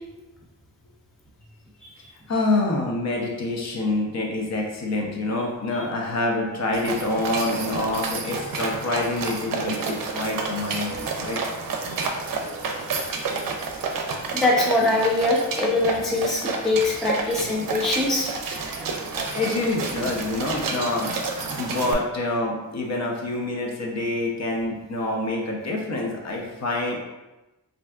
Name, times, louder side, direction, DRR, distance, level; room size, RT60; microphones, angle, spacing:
voice 1, 2.3-11.4 19.1-21.1 21.6-27.0, left 2 dB, 50° left, -1 dB, 0.6 m, -26 dB
sound 1, 6.7-21.9, right 4 dB, 70° right, 0.5 m, -30 dB
voice 2, 14.3-18.3, left 2 dB, ahead, -3 dB, 0.3 m, -23 dB
3.4 x 2.6 x 2.3 m, 1.0 s
wide cardioid pair, 140°, 34 cm